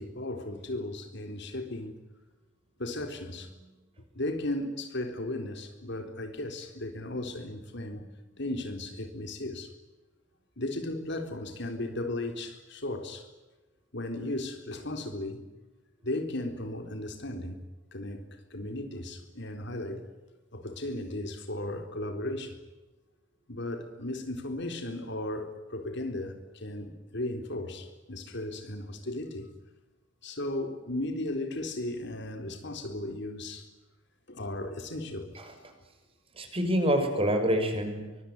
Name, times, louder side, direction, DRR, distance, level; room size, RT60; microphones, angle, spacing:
voice 1, 0.0-2.0 2.8-3.7 4.1-9.7 10.6-13.3 13.9-15.5 16.0-17.6 17.9-20.0 20.5-22.6 23.5-29.5 30.2-33.7 34.3-35.4, left 1 dB, 60° left, 4.0 m, -36 dB
voice 2, 35.3-35.7 36.3-38.2, equal, 30° right, 6.4 m, -27 dB
24.5 x 24.0 x 9.6 m
head